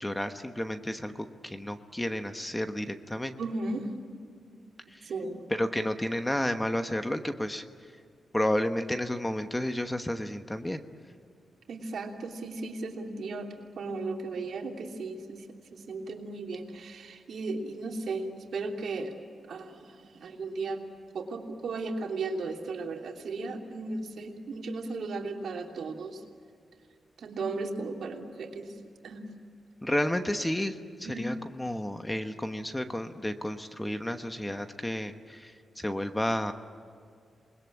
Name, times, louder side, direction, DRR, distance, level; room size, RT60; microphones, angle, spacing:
voice 1, 0.0-3.4 4.9-5.1 5.5-7.6 8.3-10.8 29.8-36.5, left 1 dB, 10° left, 8 dB, 1.1 m, -31 dB
voice 2, 3.4-3.9 5.1-5.5 11.7-15.4 15.7-19.1 19.5-20.9 21.1-26.2 27.2-28.7 29.0-29.3 31.0-31.3, right 3 dB, 70° right, 1 dB, 3.1 m, -36 dB
28.0 x 21.0 x 8.7 m, 2.2 s
wide cardioid pair, 115°, 0 cm